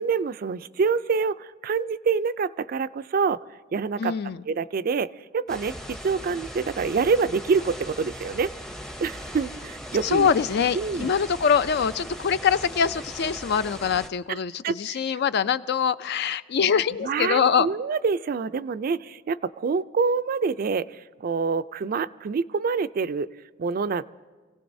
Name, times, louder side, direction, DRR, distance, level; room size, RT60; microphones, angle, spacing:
voice 1, 0.0-3.4 3.7-4.2 4.5-8.5 9.0-10.3 10.7-11.1 14.3-14.4 14.6-15.2 17.0-20.9 21.2-23.3 23.6-24.0, right 5 dB, 50° right, 14 dB, 0.4 m, -26 dB
voice 2, 4.0-4.4 10.0-17.7, left 7 dB, 60° left, 14 dB, 0.4 m, -24 dB
sound 1, 5.5-14.1, equal, 5° left, 0.6 m, -39 dB
27.0 x 17.0 x 2.7 m, 1.4 s
head